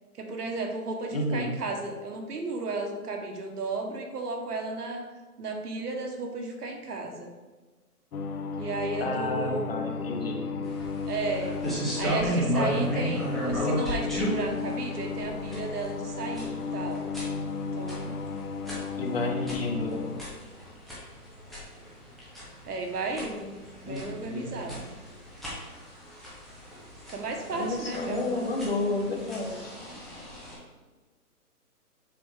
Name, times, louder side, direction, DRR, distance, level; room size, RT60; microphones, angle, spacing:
voice 1, 0.1-5.0 5.4-7.3 8.4-9.7 11.0-11.6 11.9-17.0 17.7-18.1 22.7-24.8 27.1-28.5, right 3 dB, 75° right, 3 dB, 1.3 m, -34 dB
voice 2, 1.1-1.5 9.0-10.6 19.0-20.1 23.8-24.7 27.5-29.7, left 2 dB, 40° left, 3 dB, 0.9 m, -31 dB
sound 1, 8.1-20.2, left 5 dB, 70° left, 0.7 m, -34 dB
sound 2, 10.6-30.5, equal, ahead, 0.4 m, -35 dB
7.0 x 3.1 x 4.8 m, 1.3 s
hypercardioid pair, 170°, 47 cm